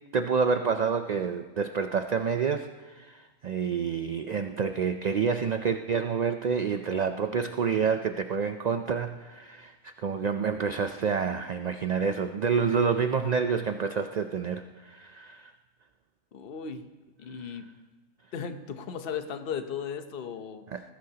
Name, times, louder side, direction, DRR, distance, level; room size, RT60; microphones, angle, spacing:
voice 1, 0.1-15.5 17.4-17.5 20.7-20.8, right 6 dB, 60° right, 7 dB, 0.4 m, -28 dB
voice 2, 16.3-16.8 17.2-17.7 18.3-20.7, left 7 dB, 50° left, 8 dB, 1.0 m, -36 dB
20.5 x 15.5 x 2.9 m, 1.3 s
omnidirectional pair, 1.4 m